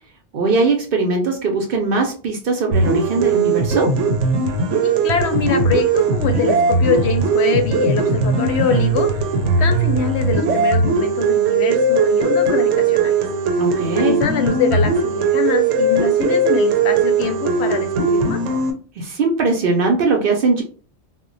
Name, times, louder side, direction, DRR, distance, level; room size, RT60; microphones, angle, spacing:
voice 1, 0.3-3.9 13.6-14.2 19.0-20.6, right 3 dB, 60° right, 3 dB, 0.6 m, -20 dB
sound 1, 2.7-18.7, right 4 dB, 85° right, 0.9 m, -18 dB
voice 2, 4.8-9.2 9.6-13.2 13.9-18.4, left 5 dB, 70° left, 6 dB, 0.8 m, -23 dB
2.2 x 2.1 x 3.8 m, 0.40 s
omnidirectional pair, 1.2 m